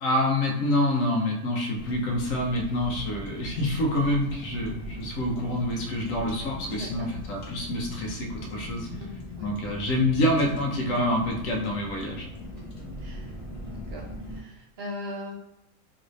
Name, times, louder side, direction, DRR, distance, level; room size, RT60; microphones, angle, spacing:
voice 1, 0.0-8.9 9.4-12.3, left 1 dB, 80° left, -1 dB, 1.1 m, -27 dB
Car, 1.8-14.4, left 1 dB, 45° left, 0.8 m, -40 dB
voice 2, 6.6-7.1 8.8-9.5 12.5-13.4 13.6-15.3, left 1 dB, 45° right, -3 dB, 0.9 m, -41 dB
3.1 x 2.6 x 3.1 m, 0.91 s
omnidirectional pair, 1.4 m